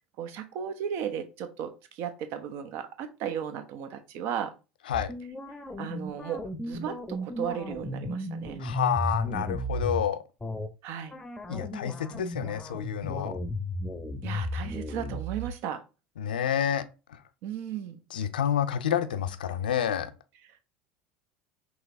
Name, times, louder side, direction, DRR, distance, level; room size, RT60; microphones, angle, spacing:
voice 1, 0.2-4.5 5.8-8.6 10.8-11.2 14.2-15.8 17.4-18.0, right 8 dB, 50° right, 0.7 m, -35 dB
sound 1, 4.9-10.0 10.4-10.7 11.1-15.5, equal, 10° left, 0.7 m, -34 dB
voice 2, 8.6-10.2 11.5-13.4 16.2-17.2 18.1-20.1, left 9 dB, 70° left, 0.5 m, -29 dB
5.6 x 3.0 x 2.6 m
figure-of-eight pair, 70°, 5 cm